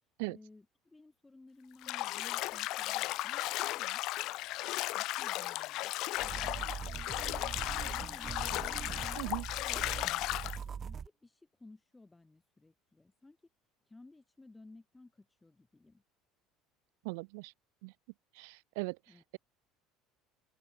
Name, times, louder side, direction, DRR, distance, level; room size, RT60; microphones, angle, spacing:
voice 1, 0.0-4.0 4.9-5.9 6.2-7.2 7.8-13.4 13.9-16.0 19.1-19.2, left 2 dB, 10° left, 3.4 m, -57 dB
Bathtub (filling or washing), 1.8-10.6, left 18 dB, 60° left, 0.7 m, -36 dB
sound 1, 6.2-11.1, right 7 dB, 30° right, 0.3 m, -42 dB
voice 2, 17.0-17.5 17.8-17.9 18.4-19.0, right 30 dB, 85° right, 0.5 m, -39 dB
open air
cardioid pair, 125°, 0 cm